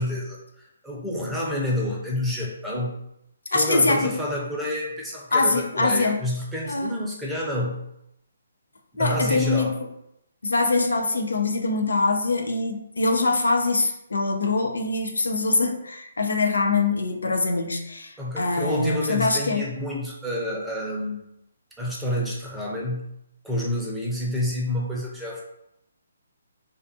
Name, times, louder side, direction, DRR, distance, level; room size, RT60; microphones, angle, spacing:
voice 1, 0.0-2.9 3.5-7.8 8.9-9.7 18.2-21.3 21.8-23.1 23.4-25.4, left 1 dB, 5° right, -5 dB, 0.6 m, -28 dB
voice 2, 3.5-4.2 5.3-6.2 6.6-6.9 9.0-9.7 10.4-19.7, left 3 dB, 90° left, 4 dB, 0.4 m, -23 dB
2.4 x 2.4 x 2.6 m, 0.79 s
hypercardioid pair, 150°, 0 cm